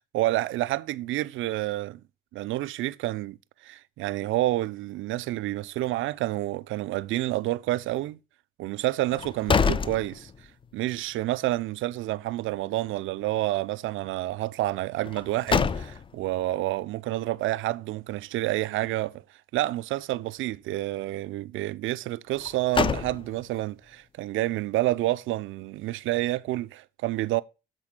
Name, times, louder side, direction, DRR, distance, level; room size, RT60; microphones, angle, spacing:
voice 1, 0.1-2.0 2.3-3.4 3.6-8.2 8.6-10.3 10.7-19.2 19.5-27.4, right 16 dB, 80° right, 0.4 m, -29 dB
sound 1, 9.1-10.7 11.1-11.2 15.0-16.3 22.3-23.6, left 5 dB, 25° left, 0.4 m, -27 dB
7.4 x 4.1 x 6.4 m
cardioid pair, 90°, 20 cm